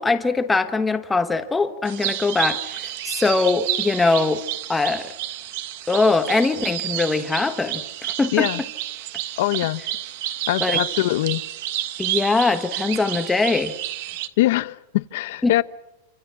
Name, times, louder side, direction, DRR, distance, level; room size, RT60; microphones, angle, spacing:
voice 1, 0.0-4.4 4.7-5.1 5.9-8.5 10.6-10.8 12.0-13.7 15.4-15.6, left 3 dB, 5° left, 1.3 m, -22 dB
sound 1, 1.8-14.3, right 13 dB, 45° right, 1.5 m, -30 dB
voice 2, 9.4-9.8 10.5-11.4 14.4-15.6, left 17 dB, 50° left, 0.9 m, -22 dB
28.5 x 26.0 x 6.0 m
supercardioid pair, 180°, 0 cm